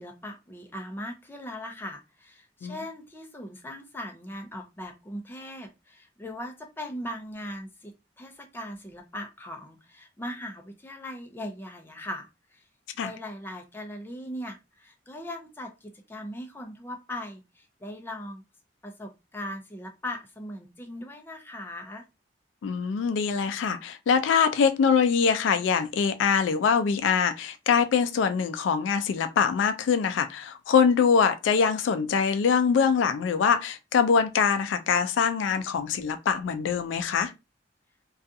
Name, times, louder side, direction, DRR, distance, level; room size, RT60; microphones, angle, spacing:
voice 1, 0.0-12.6 13.0-18.4 18.8-22.1, left 1 dB, 10° left, 0.4 m, -39 dB
voice 2, 22.6-37.3, left 6 dB, 80° left, 0.3 m, -23 dB
2.4 x 2.3 x 2.6 m
head